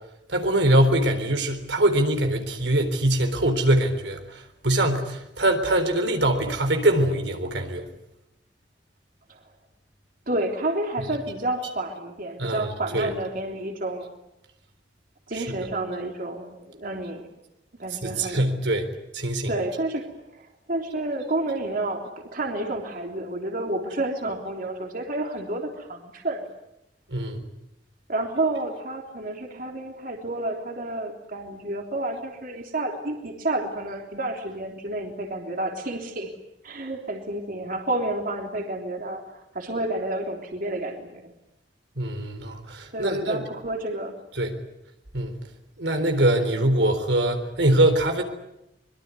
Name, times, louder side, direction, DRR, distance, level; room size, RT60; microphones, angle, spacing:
voice 1, 0.3-7.9 12.4-13.1 15.4-15.5 18.0-18.9 19.1-19.5 27.1-27.4 42.0-43.4 44.4-44.6 45.1-45.3 45.8-48.2, right 1 dB, 75° right, 6 dB, 3.9 m, -23 dB
voice 2, 10.3-14.1 15.3-17.3 17.8-18.7 19.5-20.0 20.3-26.5 28.1-36.3 36.6-41.3 42.9-44.1, right 2 dB, 50° right, 2 dB, 3.4 m, -30 dB
24.5 x 22.5 x 9.7 m, 0.86 s
head